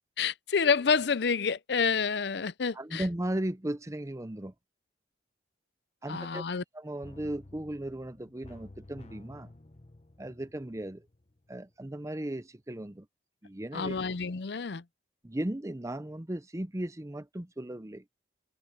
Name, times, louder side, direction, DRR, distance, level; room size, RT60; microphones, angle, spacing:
voice 1, 0.2-3.0 6.1-6.6 13.7-14.8, left 5 dB, 60° left, 0.6 m, -28 dB
voice 2, 2.7-4.5 6.0-6.4 6.7-9.5 10.2-11.1 11.5-13.1 13.4-14.0 15.2-18.0, right 1 dB, 15° right, 0.6 m, -36 dB
sound 1, 7.0-11.7 12.0-12.1, left 2 dB, 35° left, 1.0 m, -52 dB
head